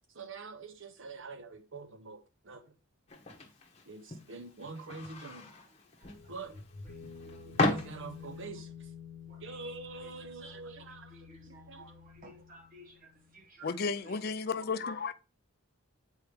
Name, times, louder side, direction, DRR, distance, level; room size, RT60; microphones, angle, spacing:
voice 1, 0.2-2.2 2.5-2.6 3.9-5.5 6.3-6.5 7.5-8.7 9.4-11.1 11.7-11.9, right 4 dB, 60° right, 0.8 m, -44 dB
sound 1, 3.1-8.5, left 2 dB, 30° left, 1.0 m, -36 dB
sound 2, 6.0-13.4, left 6 dB, 75° left, 0.8 m, -50 dB
voice 2, 7.3-7.8 8.2-8.4 9.3-9.6 9.9-10.1 10.4-10.6 11.1-13.8 14.0-14.2, right 1 dB, 40° right, 1.2 m, -56 dB
voice 3, 13.6-15.1, left 5 dB, 45° left, 0.5 m, -33 dB
8.1 x 4.6 x 3.3 m
head